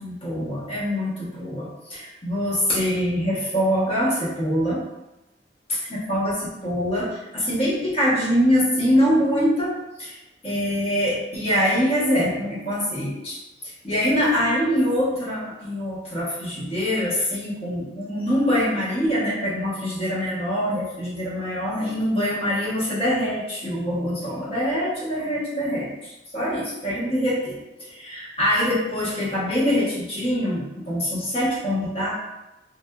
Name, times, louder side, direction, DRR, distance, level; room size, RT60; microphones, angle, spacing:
voice 1, 0.0-4.9 5.9-10.2 10.4-32.1, equal, 30° left, -8 dB, 1.0 m, -24 dB
3.3 x 2.5 x 2.3 m, 0.96 s
head